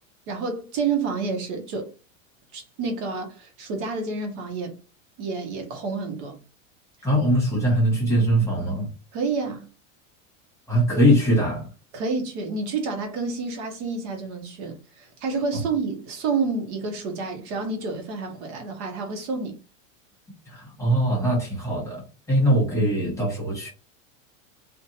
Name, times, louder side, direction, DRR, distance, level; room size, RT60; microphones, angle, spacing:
voice 1, 0.3-1.9 2.5-4.8 5.2-6.4 9.1-9.7 11.9-19.6, right 4 dB, 60° right, 0.9 m, -29 dB
voice 2, 7.0-8.9 10.7-11.7 15.5-15.6 20.5-23.7, equal, 5° left, 1.1 m, -22 dB
2.6 x 2.2 x 2.8 m
supercardioid pair, 155°, 39 cm